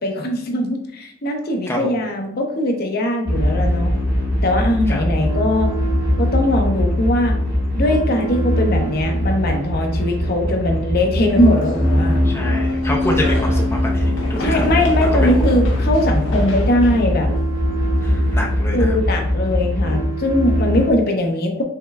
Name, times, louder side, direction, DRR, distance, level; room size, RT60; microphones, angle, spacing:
voice 1, 0.0-4.0 4.4-5.7 6.2-7.4 7.7-12.2 14.4-17.3 18.7-21.6, left 1 dB, 50° left, 3 dB, 0.7 m, -20 dB
sound 1, 3.3-20.9, equal, 55° right, 1.5 m, -20 dB
sound 2, 11.3-18.4, left 2 dB, 80° left, 1.0 m, -33 dB
voice 2, 12.2-14.6 15.0-15.4 18.0-19.0, left 1 dB, 15° left, -1 dB, 0.5 m, -26 dB
5.5 x 3.2 x 2.3 m, 0.68 s
head